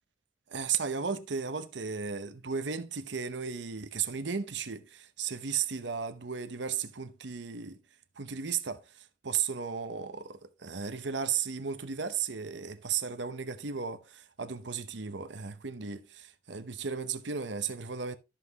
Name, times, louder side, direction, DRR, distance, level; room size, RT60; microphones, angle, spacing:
voice 1, 0.5-7.8 8.2-18.2, right 6 dB, 75° right, 0.9 m, -35 dB
13.0 x 5.8 x 2.9 m
head